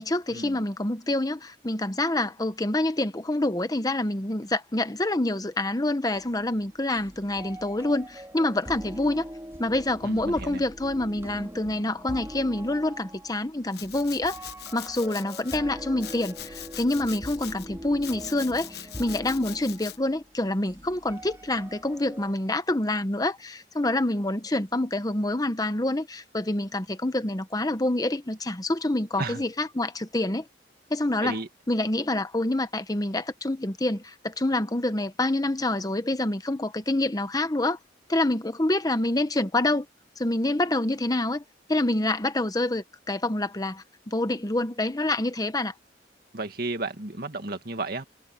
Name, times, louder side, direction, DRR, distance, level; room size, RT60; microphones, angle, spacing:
voice 1, 0.0-9.2 9.6-14.4 14.7-30.4 30.9-31.4 31.7-37.8 38.1-39.8 40.2-41.4 41.7-45.7, left 2 dB, 20° left, 1.1 m, -27 dB
sound 1, 6.1-22.3, equal, 15° right, 2.6 m, -43 dB
voice 2, 10.0-10.6 29.2-29.4 31.2-31.5 46.3-48.0, right 2 dB, 55° right, 2.2 m, -33 dB
Domestic sounds home sounds, 13.7-15.6 16.0-17.7 18.0-20.0, left 12 dB, 60° left, 1.1 m, -42 dB
head